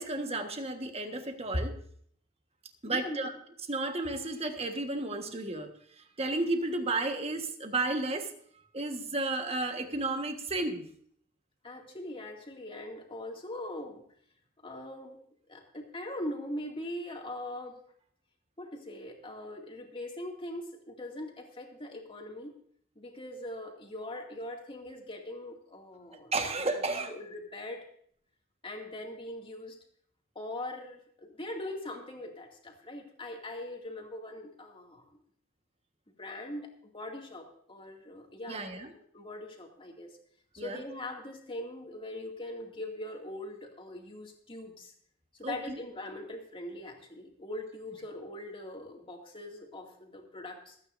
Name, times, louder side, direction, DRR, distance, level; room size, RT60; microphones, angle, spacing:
voice 1, 0.0-1.7 2.8-3.3 3.7-5.7 6.2-8.3 8.7-10.9 26.3-27.1 38.5-38.9 40.6-40.8 45.4-45.8, right 2 dB, 30° right, 6 dB, 1.4 m, -32 dB
voice 2, 2.8-3.3 11.6-14.0 14.6-15.2 15.5-17.8 18.6-22.5 23.0-27.8 28.6-29.8 30.3-35.0 36.2-38.9 39.1-40.2 40.5-44.9 45.4-50.8, left 1 dB, 25° left, 1 dB, 2.3 m, -41 dB
27.0 x 9.3 x 2.6 m, 0.63 s
head